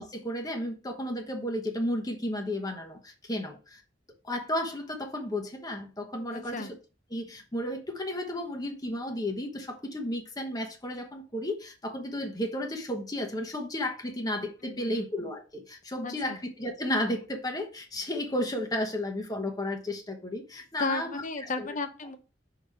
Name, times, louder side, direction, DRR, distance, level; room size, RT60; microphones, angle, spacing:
voice 1, 0.0-3.8 4.2-6.7 7.1-21.7, left 1 dB, 20° left, 1.1 m, -33 dB
voice 2, 6.3-6.7 14.6-15.1 16.0-16.4 20.8-22.2, left 3 dB, 45° left, 0.8 m, -34 dB
5.9 x 4.0 x 4.7 m
head